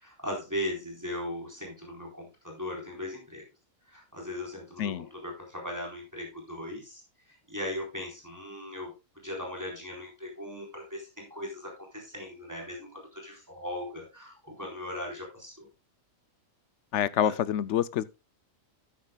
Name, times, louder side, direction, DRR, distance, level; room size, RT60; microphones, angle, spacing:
voice 1, 0.0-3.4 3.9-7.0 7.5-8.9 9.2-15.7 17.2-17.4, left 1 dB, 10° right, 3.8 m, -38 dB
voice 2, 16.9-18.0, left 10 dB, 65° left, 0.9 m, -27 dB
12.0 x 9.3 x 2.3 m
omnidirectional pair, 1.4 m